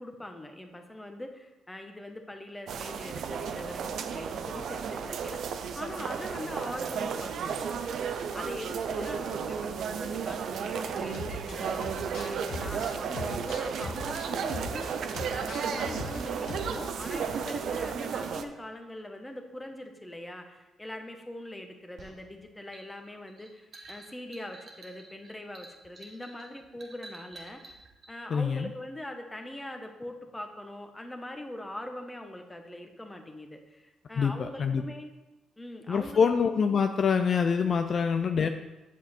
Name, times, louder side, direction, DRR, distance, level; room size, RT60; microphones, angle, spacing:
voice 1, 0.0-7.8 8.3-27.8 28.1-35.1 35.6-36.3, left 1 dB, 10° left, 5 dB, 1.1 m, -42 dB
sound 1, 2.7-18.4, right 6 dB, 70° right, 0.6 m, -33 dB
sound 2, 11.1-11.5 11.8-14.9 15.1-16.2 16.5-16.7, left 2 dB, 75° left, 1.5 m, -39 dB
sound 3, 22.0-28.1, right 2 dB, 45° right, 1.7 m, -50 dB
voice 2, 28.3-28.7 34.2-34.8 35.9-38.5, left 6 dB, 50° left, 7 dB, 0.4 m, -25 dB
8.2 x 6.9 x 4.4 m, 1.1 s
cardioid pair, 90°, 0 cm